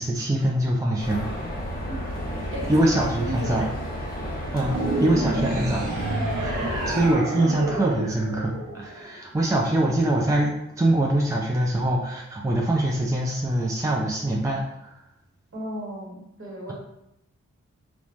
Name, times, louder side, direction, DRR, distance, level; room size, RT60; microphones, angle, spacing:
voice 1, 0.0-1.5 2.7-3.6 4.5-14.9, right 1 dB, 10° right, -2 dB, 0.4 m, -24 dB
sound 1, 1.0-7.1, equal, 30° left, 0.9 m, -32 dB
voice 2, 2.5-2.8 3.2-3.7 15.5-16.7, right 1 dB, 45° right, -4 dB, 1.1 m, -34 dB
sound 2, 4.7-9.2, right 2 dB, 85° right, 0.5 m, -29 dB
3.0 x 2.2 x 2.5 m, 0.83 s
cardioid pair, 40°, 30 cm